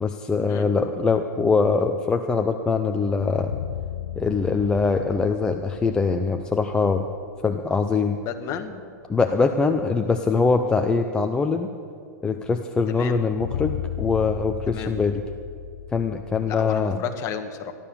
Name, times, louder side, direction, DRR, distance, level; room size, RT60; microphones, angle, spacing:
voice 1, 0.0-3.6 4.2-7.1 7.4-8.2 9.1-11.7 12.2-15.2 15.9-17.0, left 4 dB, 10° left, 5 dB, 0.5 m, -23 dB
sound 1, 3.1-7.6 7.9-8.0 13.0-16.9, left 11 dB, 75° left, 0.6 m, -35 dB
voice 2, 8.2-8.8 12.9-13.2 14.7-14.9 16.5-17.7, left 8 dB, 30° left, 7 dB, 1.3 m, -32 dB
15.0 x 11.5 x 6.9 m, 2.3 s
hypercardioid pair, 150°, 10 cm